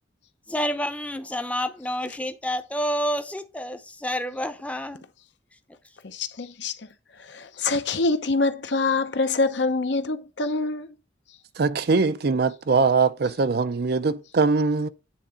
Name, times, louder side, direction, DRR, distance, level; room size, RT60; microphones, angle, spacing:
voice 1, 0.5-5.0, equal, 5° left, 0.7 m, -29 dB
voice 2, 6.0-6.9 7.2-10.9, left 3 dB, 65° left, 0.8 m, -25 dB
voice 3, 11.6-14.9, right 4 dB, 55° right, 0.5 m, -22 dB
9.1 x 3.8 x 5.7 m
head